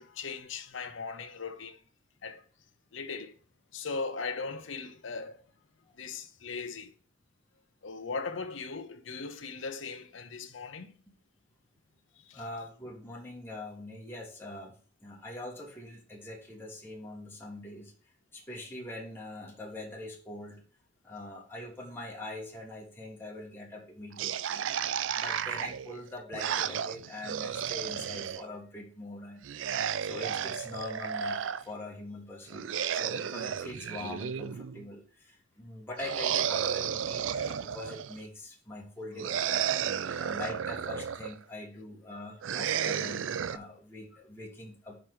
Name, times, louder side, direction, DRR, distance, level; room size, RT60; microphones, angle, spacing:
voice 1, 0.0-1.8 2.2-2.4 2.9-3.4 3.7-5.4 5.9-6.9 7.8-10.9 12.2-12.4, left 4 dB, 85° left, 0.8 m, -38 dB
voice 2, 12.3-17.9 18.3-20.6 21.0-24.7 25.2-29.4 30.0-39.7 40.2-45.0, left 2 dB, 10° left, 1.5 m, -43 dB
sound 1, 24.2-28.4 29.4-31.6 32.5-34.8 36.0-38.2 39.2-41.4 42.4-43.6, right 8 dB, 85° right, 0.4 m, -33 dB
5.1 x 4.6 x 6.2 m
head